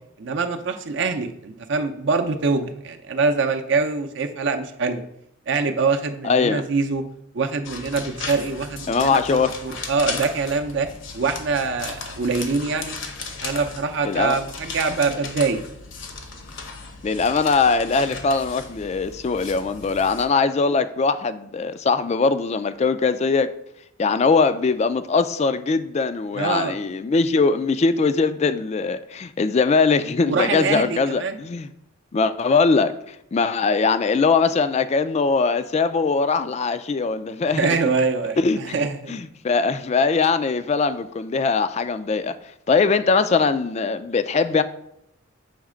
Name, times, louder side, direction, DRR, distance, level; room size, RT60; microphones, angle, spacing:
voice 1, 0.2-5.0 5.5-7.0 7.3-10.9 11.1-13.0 13.4-15.6 26.3-26.8 30.3-31.4 37.5-39.1, right 4 dB, 60° right, 0.6 m, -24 dB
voice 2, 6.2-6.6 8.9-9.5 14.0-14.4 17.0-23.5 24.0-31.7 32.1-37.8 38.4-38.7 39.1-42.3 42.7-44.6, left 4 dB, 30° left, 0.3 m, -21 dB
sound 1, 7.6-20.2, left 4 dB, 65° left, 0.9 m, -36 dB
7.2 x 3.2 x 4.9 m
head